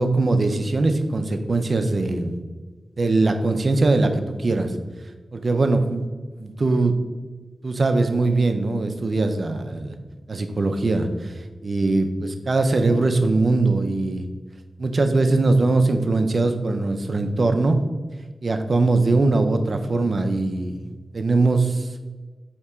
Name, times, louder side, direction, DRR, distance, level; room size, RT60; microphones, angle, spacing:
voice 1, 0.0-2.3 3.0-4.7 5.3-6.0 6.4-6.9 7.6-9.9 10.3-11.3 11.6-14.2 14.8-17.8 18.4-21.9, right 3 dB, 55° right, 7 dB, 0.4 m, -21 dB
4.2 x 2.8 x 3.4 m, 1.3 s
cardioid pair, 70°, 0 cm